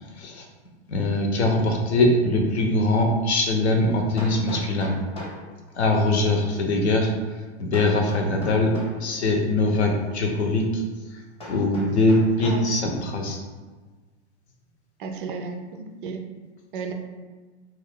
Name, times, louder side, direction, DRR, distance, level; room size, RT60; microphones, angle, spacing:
voice 1, 0.9-4.9 5.7-7.1 7.6-8.7 9.0-10.8 11.1-11.2 11.5-13.4, left 2 dB, 70° left, 2 dB, 0.7 m, -22 dB
Hammer, 4.2-5.5 7.7-9.0 11.4-12.7, left 1 dB, 15° left, 0.8 m, -38 dB
voice 2, 15.0-16.2 16.7-16.9, right 4 dB, 50° right, 4 dB, 0.4 m, -33 dB
2.4 x 2.4 x 3.5 m, 1.3 s
figure-of-eight pair, 100°, 34 cm